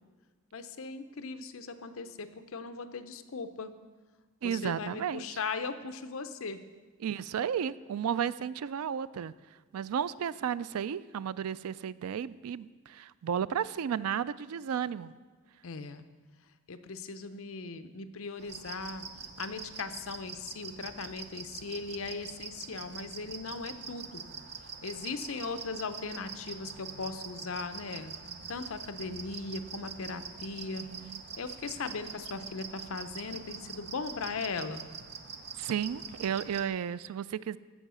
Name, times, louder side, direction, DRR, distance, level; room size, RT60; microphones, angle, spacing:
voice 1, 0.5-3.7 4.4-6.6 15.6-16.1 16.7-19.1 19.4-24.2 24.8-28.1 28.5-34.9, left 4 dB, 65° left, 10 dB, 0.7 m, -38 dB
voice 2, 4.4-5.4 7.0-9.3 9.7-15.1 30.8-31.2 35.6-37.6, right 8 dB, 80° right, 17 dB, 0.3 m, -33 dB
sound 1, 18.4-36.6, right 6 dB, 50° right, 0.8 m, -44 dB
15.0 x 5.6 x 6.2 m, 1.4 s
head